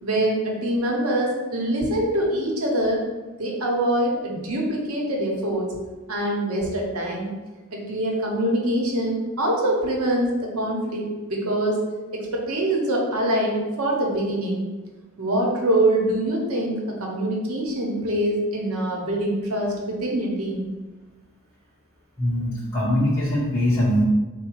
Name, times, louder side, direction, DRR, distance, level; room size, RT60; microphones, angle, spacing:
voice 1, 0.0-3.0 3.4-5.7 6.1-7.3 7.7-11.8 12.1-14.6 15.2-20.7, right 1 dB, 80° right, -1 dB, 0.9 m, -24 dB
voice 2, 22.2-24.0, equal, 10° left, -8 dB, 0.6 m, -22 dB
4.0 x 2.2 x 4.5 m, 1.2 s
head